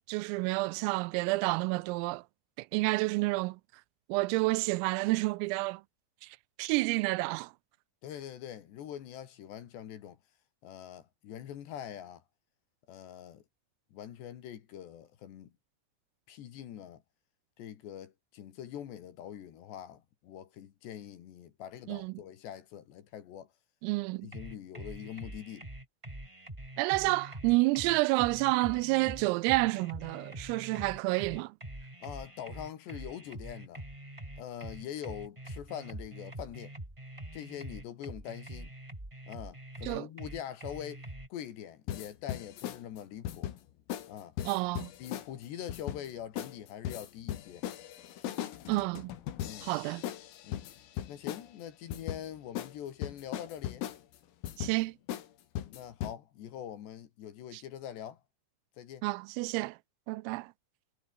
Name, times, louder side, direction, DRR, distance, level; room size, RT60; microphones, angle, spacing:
voice 1, 0.1-2.2 2.6-3.6 4.1-5.8 6.2-7.5 21.9-22.1 23.8-24.3 26.8-31.5 39.8-40.1 44.5-44.9 48.7-49.1 49.6-50.0 54.6-54.9 57.5-57.6 59.0-59.8 60.1-60.5, right 23 dB, 85° right, 3.3 m, -29 dB
voice 2, 8.0-10.2 10.6-12.2 12.9-13.4 13.9-15.5 16.3-17.0 17.6-23.5 24.2-25.7 27.1-27.2 32.0-33.8 34.4-36.7 37.3-38.7 39.3-43.5 44.1-44.4 45.0-47.7 49.4-49.7 50.4-50.7 51.1-53.8 55.7-58.2 58.8-59.1, left 10 dB, 60° left, 3.9 m, -44 dB
sound 1, 24.3-41.3, right 1 dB, 5° right, 2.7 m, -44 dB
sound 2, 41.9-42.8 43.3-43.6 43.9-44.1 44.4-45.3 45.7-46.1 46.4-46.6 46.9-51.5 51.9-52.2 52.6-52.7 53.0-54.0 54.4-54.8 55.1-55.3 55.6-56.1, left 11 dB, 85° left, 5.0 m, -38 dB
omnidirectional pair, 6.0 m